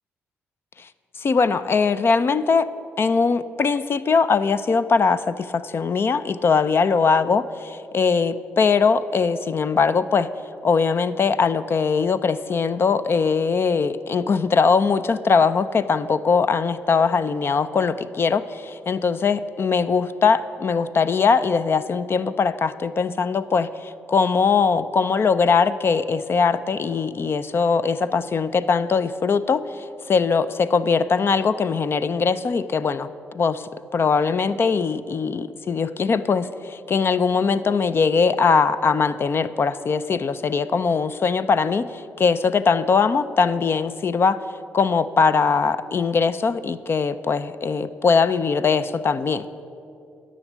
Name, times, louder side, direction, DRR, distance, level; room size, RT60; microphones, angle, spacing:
voice 1, 1.2-2.7 3.0-10.3 10.6-33.1 33.3-44.4 44.7-49.5, left 5 dB, 50° left, 14 dB, 0.5 m, -21 dB
11.0 x 6.3 x 8.0 m, 2.7 s
supercardioid pair, 60°, 5 cm